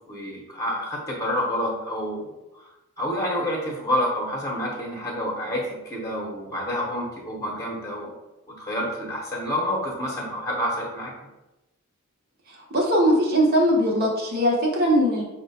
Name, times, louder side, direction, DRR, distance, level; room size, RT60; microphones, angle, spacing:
voice 1, 0.1-2.3 3.0-8.1 8.6-11.1, equal, 15° left, -2 dB, 0.9 m, -28 dB
voice 2, 12.7-15.2, equal, 45° right, -2 dB, 0.9 m, -20 dB
5.9 x 2.2 x 4.1 m, 1.0 s
head